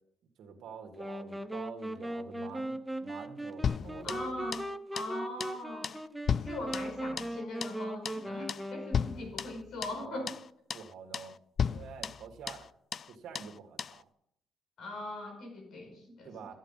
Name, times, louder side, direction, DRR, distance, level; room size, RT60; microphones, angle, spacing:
voice 1, 0.4-4.4 10.0-10.3 10.7-11.3 11.6-12.7 13.1-14.0 16.2-16.5, right 6 dB, 75° right, 4 dB, 1.8 m, -47 dB
sound 1, 0.9-9.4, right 1 dB, 10° right, 0.7 m, -39 dB
sound 2, 3.6-4.7 5.0-5.1 5.4-5.6 5.8-7.4 7.6-7.8 8.0-8.2 8.5-8.7 8.9-10.0 10.3-10.4 10.7-10.9 11.1-11.3 11.6-12.7 12.9-13.1 13.3-13.5 13.8-14.0, left 7 dB, 50° left, 0.3 m, -35 dB
voice 2, 4.0-4.6 4.9-5.9 6.4-10.3 14.8-16.3, left 2 dB, 75° left, 3 dB, 5.3 m, -40 dB
13.0 x 8.2 x 5.6 m, 0.71 s
cardioid pair, 90°, 0 cm